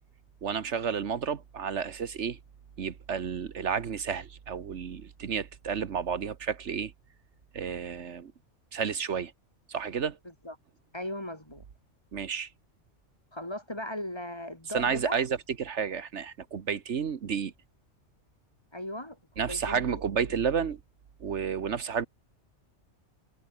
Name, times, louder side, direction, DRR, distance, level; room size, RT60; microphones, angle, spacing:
voice 1, 0.4-2.4 2.8-6.9 7.5-8.3 8.7-9.3 9.7-10.2 12.1-12.5 14.7-17.5 19.4-20.8 21.2-22.1, right 7 dB, 70° right, 1.4 m, -31 dB
voice 2, 10.9-11.6 13.3-15.2 18.7-20.0 20.3-20.4, left 1 dB, 20° left, 3.1 m, -38 dB
omnidirectional pair, 1.2 m